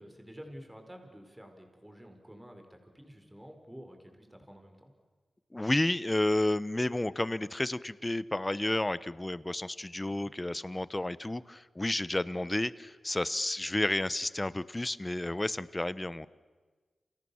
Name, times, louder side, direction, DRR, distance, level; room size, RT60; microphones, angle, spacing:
voice 1, 0.0-4.9 10.1-10.3 12.3-12.5, equal, 10° right, 4 dB, 5.1 m, -50 dB
voice 2, 5.5-16.3, left 1 dB, 20° left, 17 dB, 1.0 m, -31 dB
29.0 x 28.5 x 7.2 m, 1.4 s
cardioid pair, 60°, 0 cm